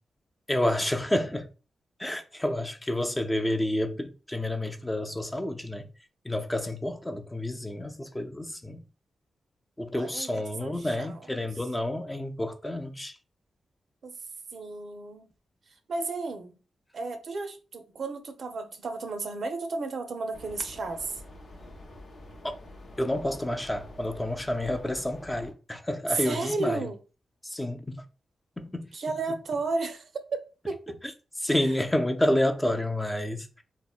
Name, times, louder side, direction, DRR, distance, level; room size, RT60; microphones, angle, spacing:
voice 1, 0.5-1.5 2.0-5.9 6.2-8.8 9.8-13.2 22.4-22.6 23.0-26.9 27.4-28.0 28.6-28.9 31.0-31.1 31.4-33.5, left 1 dB, 15° left, 0.3 m, -29 dB
voice 2, 9.9-11.3 14.0-14.1 14.5-15.3 15.9-16.6 16.9-21.2 26.1-27.0 28.9-30.4 30.7-31.0 31.5-31.7, right 3 dB, 65° right, 0.4 m, -33 dB
sound 1, 20.3-25.5, left 1 dB, 60° left, 0.6 m, -47 dB
2.7 x 2.0 x 2.3 m
cardioid pair, 85°, 0 cm